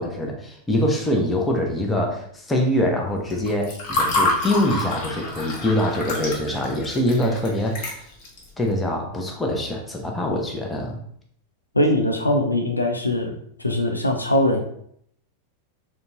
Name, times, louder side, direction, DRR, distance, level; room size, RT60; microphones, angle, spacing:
voice 1, 0.0-7.9 8.6-11.0, left 1 dB, 10° left, 1 dB, 0.6 m, -24 dB
Water / Fill (with liquid), 3.3-8.4, left 2 dB, 40° left, 0.9 m, -27 dB
voice 2, 11.7-13.3 13.6-14.6, left 1 dB, 85° left, 3 dB, 0.4 m, -21 dB
3.9 x 2.2 x 2.4 m, 0.67 s
figure-of-eight pair, 90°, 0 cm